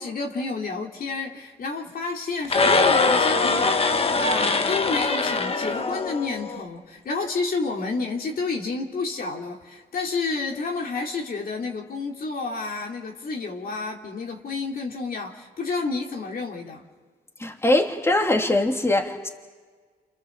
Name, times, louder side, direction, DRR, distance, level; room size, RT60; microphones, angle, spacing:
voice 1, 0.0-16.8, left 3 dB, 55° left, 0 dB, 3.1 m, -30 dB
sound 1, 2.4-6.6, left 4 dB, 35° left, 1.3 m, -22 dB
voice 2, 17.4-19.3, left 1 dB, 15° left, 2 dB, 2.9 m, -22 dB
28.0 x 27.0 x 7.4 m, 1.5 s
cardioid pair, 95°, 18 cm